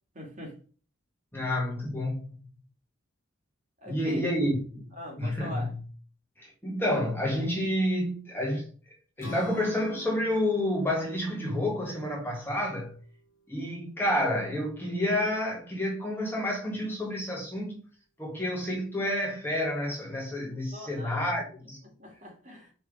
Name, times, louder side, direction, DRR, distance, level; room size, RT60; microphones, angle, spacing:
voice 1, 0.1-0.6 3.8-4.2 5.0-5.7 20.7-21.2 21.8-22.7, left 1 dB, 40° right, 2.3 m, -42 dB
voice 2, 1.3-2.4 3.9-4.9 5.2-5.7 6.4-8.7 9.2-12.9 13.5-17.8 18.2-21.8, left 1 dB, 10° left, 1.5 m, -29 dB
Strum, 9.2-13.4, left 1 dB, 85° left, 1.5 m, -46 dB
5.4 x 4.5 x 4.8 m
head